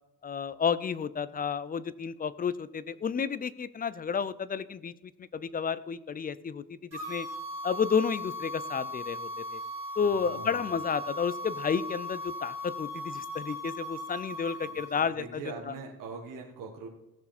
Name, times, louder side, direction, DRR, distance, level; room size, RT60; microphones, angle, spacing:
voice 1, 0.2-7.3 7.6-9.6 10.0-15.4 15.7-15.8, left 6 dB, 25° left, 15 dB, 0.6 m, -31 dB
sound 1, 6.9-15.1, left 1 dB, 45° right, 4.3 m, -38 dB
voice 2, 10.0-10.7 14.6-16.9, right 4 dB, 60° right, 0 dB, 1.8 m, -43 dB
16.5 x 7.0 x 4.3 m, 0.94 s
cardioid pair, 115°, 36 cm